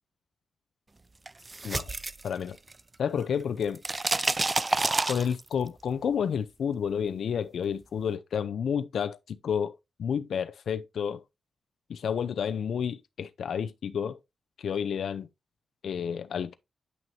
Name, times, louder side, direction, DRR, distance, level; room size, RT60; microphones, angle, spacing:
sound 1, 1.3-3.0 3.2-5.7, right 2 dB, 25° right, 0.3 m, -29 dB
voice 1, 2.2-2.6 3.0-3.8 5.1-11.2 11.9-14.2 14.6-15.3 15.8-16.5, left 7 dB, 75° left, 0.5 m, -30 dB
9.3 x 6.0 x 2.7 m
wide cardioid pair, 125°, 0 cm